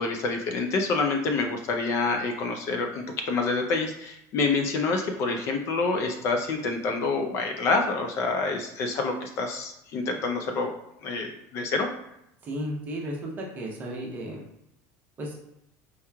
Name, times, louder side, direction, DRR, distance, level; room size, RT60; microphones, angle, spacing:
voice 1, 0.0-10.7 11.0-11.9, left 3 dB, 40° left, 4 dB, 0.4 m, -27 dB
voice 2, 12.4-14.4 15.2-15.4, right 1 dB, 25° right, -1 dB, 0.7 m, -34 dB
4.6 x 2.9 x 2.2 m, 0.82 s
cardioid pair, 165°, 8 cm